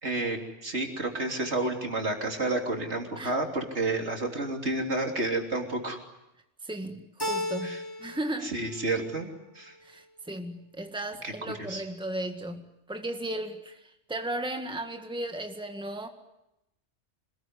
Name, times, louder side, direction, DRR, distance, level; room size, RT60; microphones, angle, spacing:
voice 1, 0.0-6.0 7.6-7.8 8.4-9.3 9.6-9.7 11.2-11.3 11.6-11.8, right 2 dB, 70° right, 2 dB, 3.7 m, -30 dB
voice 2, 6.6-8.5 9.8-13.8 14.1-16.1, right 1 dB, 5° right, 5 dB, 1.9 m, -35 dB
Keyboard (musical), 7.2-8.3 8.6-9.4, left 1 dB, 20° left, 2.6 m, -34 dB
26.5 x 20.0 x 9.7 m, 0.88 s
omnidirectional pair, 1.2 m